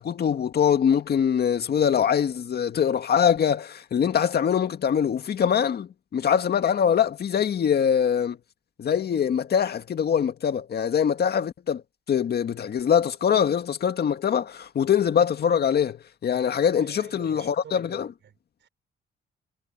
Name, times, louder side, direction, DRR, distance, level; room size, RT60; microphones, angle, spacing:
voice 1, 0.0-8.4 8.8-11.8 12.1-18.1, left 8 dB, 55° left, 2.0 m, -23 dB
voice 2, 16.8-18.7, right 9 dB, 65° right, 6.5 m, -49 dB
cardioid pair, 90°, 20 cm